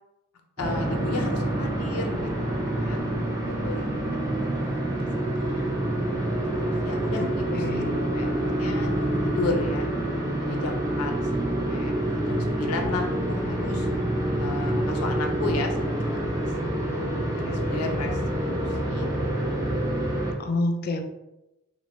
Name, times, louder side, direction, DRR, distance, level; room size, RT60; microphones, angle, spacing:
voice 1, 0.6-2.3 2.6-3.1 3.6-5.1 5.3-5.7 6.4-7.8 8.1-8.3 8.6-9.9 10.4-13.9 14.4-16.4 16.9-18.2 18.8-19.1, left 3 dB, 85° left, 3 dB, 0.6 m, -34 dB
sound 1, 0.6-20.3, right 1 dB, 15° right, 0.5 m, -27 dB
voice 2, 7.2-7.9 20.4-21.0, left 2 dB, 45° left, 5 dB, 0.4 m, -28 dB
3.3 x 2.5 x 3.0 m, 0.94 s
head